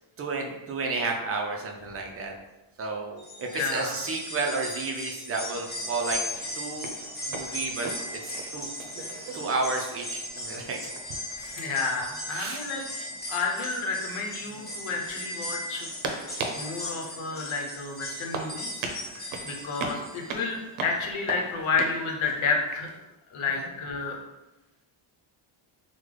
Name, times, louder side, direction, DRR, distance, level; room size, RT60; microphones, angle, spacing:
voice 1, 0.2-2.3 2.8-6.2 6.6-6.9 7.3-7.9 8.2-8.7 9.3-10.8 11.6-11.8 12.3-12.6 13.0-13.1 23.6-23.7, right 3 dB, 30° right, 1 dB, 0.4 m, -32 dB
sound 1, 3.2-20.5 20.9-21.0 22.1-22.2, left 1 dB, 20° left, 0.7 m, -37 dB
voice 2, 3.5-4.0 11.4-12.9 13.3-15.9 16.5-22.9 23.3-24.2, left 4 dB, 80° left, 1 dB, 0.8 m, -31 dB
sound 2, 5.5-23.0, right 3 dB, 75° right, 0.6 m, -40 dB
3.6 x 2.1 x 3.2 m, 1.0 s
cardioid pair, 140°, 48 cm